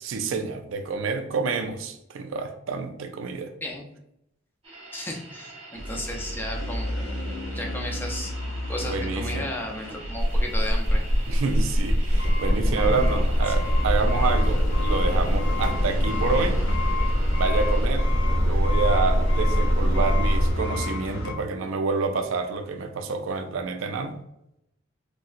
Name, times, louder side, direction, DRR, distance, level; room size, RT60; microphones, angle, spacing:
voice 1, 0.0-3.5 8.8-9.4 11.3-16.6 17.3-18.1 18.4-24.2, right 4 dB, 70° right, 7 dB, 0.4 m, -28 dB
sound 1, 4.6-17.9, right 2 dB, 30° right, 0.8 m, -45 dB
voice 2, 4.9-7.1 7.5-8.3 8.7-11.0, left 1 dB, 10° left, 0 dB, 0.4 m, -34 dB
sound 2, 5.8-21.3, left 2 dB, 70° left, 0.6 m, -31 dB
sound 3, 10.2-20.5, equal, 45° left, 0.9 m, -23 dB
3.2 x 2.7 x 2.5 m, 0.81 s
head